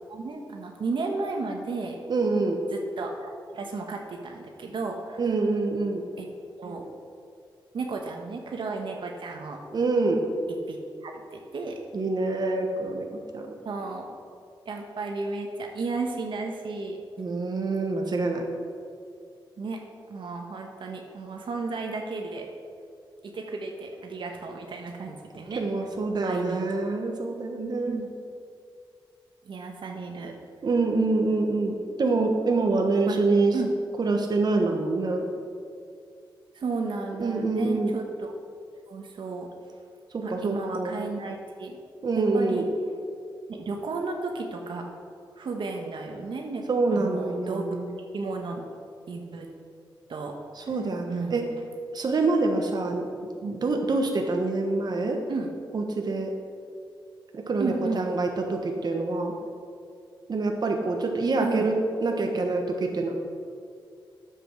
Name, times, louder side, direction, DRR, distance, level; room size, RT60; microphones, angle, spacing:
voice 1, 0.1-2.0 2.7-5.2 6.2-6.3 6.6-6.9 7.7-9.6 10.5-10.8 11.0-11.8 13.6-14.2 14.6-17.0 19.6-19.8 20.1-22.5 23.2-25.7 26.2-26.6 27.9-28.1 29.4-30.3 33.1-33.2 33.5-33.7 36.5-38.4 38.9-39.5 40.2-41.8 42.2-42.6 43.5-44.9 45.4-46.6 46.9-47.8 48.1-48.6 49.1-49.5 50.1-50.7 51.1-51.4 53.4-53.5 55.3-55.5 57.6-58.0 61.4-61.7, right 3 dB, 70° right, 2 dB, 1.3 m, -33 dB
voice 2, 2.1-2.6 5.2-6.0 9.7-10.2 11.9-13.1 13.3-13.5 17.2-18.5 25.6-28.0 30.6-33.6 34.0-35.3 37.2-38.0 40.1-41.0 42.0-42.7 46.7-47.9 50.6-51.5 51.9-53.1 53.5-55.2 55.7-56.3 57.3-59.4 60.3-63.1, right 3 dB, 50° right, 2 dB, 1.2 m, -26 dB
10.0 x 7.8 x 6.3 m, 2.3 s
cardioid pair, 75°, 9 cm